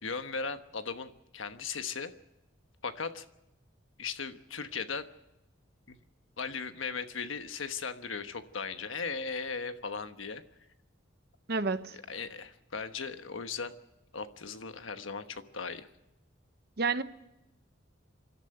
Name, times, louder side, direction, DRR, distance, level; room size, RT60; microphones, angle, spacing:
voice 1, 0.0-2.1 2.8-3.2 4.0-5.1 5.9-6.0 6.4-10.4 11.9-13.7 14.1-15.9, left 5 dB, 80° left, 1.2 m, -37 dB
voice 2, 11.5-12.0 16.8-17.0, right 4 dB, 50° right, 0.9 m, -29 dB
27.0 x 12.5 x 7.9 m
head